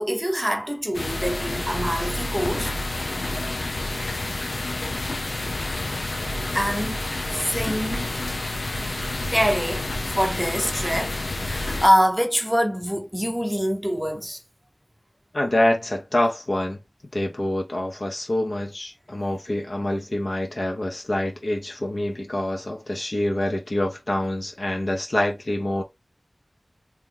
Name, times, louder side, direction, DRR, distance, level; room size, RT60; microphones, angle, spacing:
voice 1, 0.0-2.8 6.1-6.2 6.5-7.0 7.3-8.2 9.3-9.9 10.1-14.4, equal, 5° right, 0.9 m, -25 dB
sound 1, 0.9-11.9, left 2 dB, 80° left, 0.7 m, -29 dB
voice 2, 15.3-16.8 17.1-25.8, left 1 dB, 60° left, 1.0 m, -26 dB
3.1 x 2.9 x 3.6 m
wide cardioid pair, 65°, 0 cm